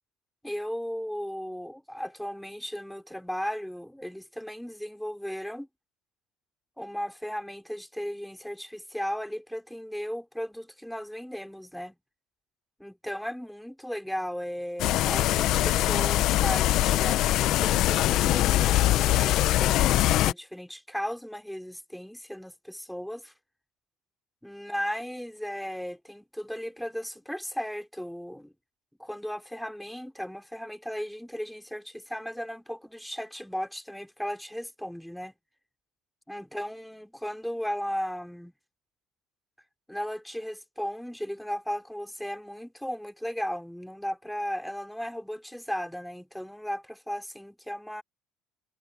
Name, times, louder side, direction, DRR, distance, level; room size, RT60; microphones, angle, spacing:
voice 1, 0.4-5.7 6.8-12.0 12.8-23.3 24.4-28.5 29.0-35.3 36.3-38.5 39.9-48.0, equal, ahead, 4.3 m, -36 dB
sound 1, 14.8-20.3, left 15 dB, 65° left, 1.1 m, -23 dB
hypercardioid pair, 70°, 0 cm